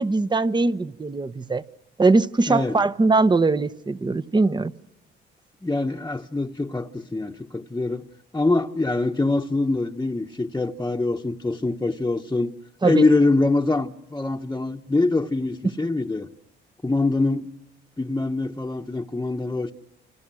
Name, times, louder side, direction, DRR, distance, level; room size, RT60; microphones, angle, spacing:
voice 1, 0.0-1.6 2.0-4.7 12.8-13.1, right 3 dB, 20° right, 1.1 m, -21 dB
voice 2, 2.5-2.8 5.6-8.1 8.3-12.5 12.8-16.3 16.8-17.5 18.0-19.7, left 2 dB, 15° left, 1.2 m, -24 dB
29.0 x 28.5 x 6.3 m
cardioid pair, 90°, 20 cm